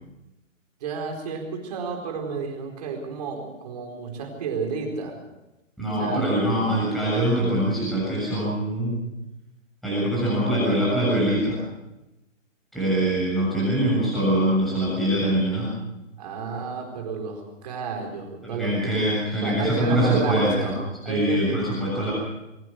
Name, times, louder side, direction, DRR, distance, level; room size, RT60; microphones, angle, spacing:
voice 1, 0.8-5.2 6.0-6.3 16.2-18.9 19.4-20.8 21.0-21.5, right 5 dB, 30° right, 2 dB, 4.4 m, -31 dB
voice 2, 5.8-9.0 9.8-11.6 12.7-15.7 18.4-20.7 21.1-22.1, right 1 dB, ahead, -8 dB, 7.1 m, -23 dB
22.5 x 19.0 x 6.4 m, 0.96 s
hypercardioid pair, 165°, 39 cm